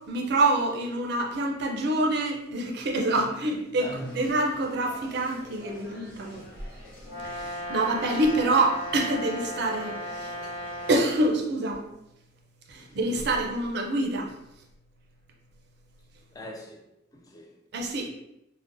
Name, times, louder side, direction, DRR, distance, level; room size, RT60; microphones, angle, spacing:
voice 1, 0.1-6.4 7.2-10.4 10.9-11.9 12.7-14.3 17.7-18.1, right 2 dB, 60° right, 0.5 m, -26 dB
voice 2, 3.7-4.1 12.8-13.0 16.3-16.9 17.1-17.6 17.8-18.1, left 1 dB, 20° left, 0.3 m, -44 dB
sound 1, 3.8-11.3, equal, 50° left, 0.8 m, -47 dB
Brass instrument, 7.1-11.1, equal, 75° left, 1.2 m, -36 dB
3.7 x 2.0 x 2.5 m
head